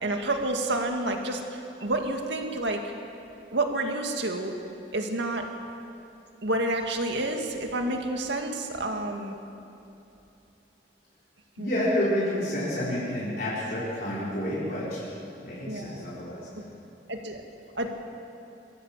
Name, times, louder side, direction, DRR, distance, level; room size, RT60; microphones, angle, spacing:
voice 1, 0.0-2.9 3.5-4.5 4.9-5.5 6.4-9.4 11.6-11.8 15.7-16.1 17.1-17.4 17.7-17.9, right 2 dB, 80° right, 3 dB, 2.2 m, -29 dB
voice 2, 11.6-15.0 15.4-16.4, left 1 dB, 55° left, -9 dB, 4.5 m, -29 dB
23.5 x 16.0 x 7.6 m, 2.9 s
head